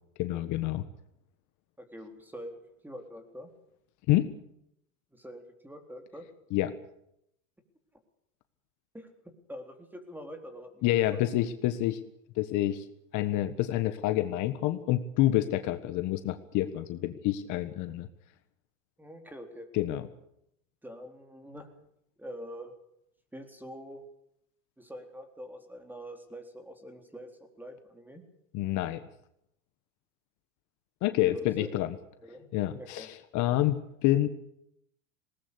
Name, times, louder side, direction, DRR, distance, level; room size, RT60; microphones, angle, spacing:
voice 1, 0.2-0.8 4.1-4.3 6.5-6.7 10.8-12.0 12.4-12.8 13.1-18.1 19.7-20.1 28.5-29.0 31.0-31.9 32.5-34.3, left 14 dB, 50° left, 10 dB, 1.6 m, -28 dB
voice 2, 1.8-2.6 2.8-3.5 5.1-6.3 8.9-10.9 11.1-11.2 19.0-19.7 20.8-21.7 22.2-22.7 23.3-24.1 24.8-27.3 27.6-28.2 31.0-31.7 32.2-32.5 32.8-33.1, equal, 5° right, 6 dB, 3.8 m, -45 dB
19.5 x 19.0 x 8.3 m, 0.76 s
hypercardioid pair, 110°, 39 cm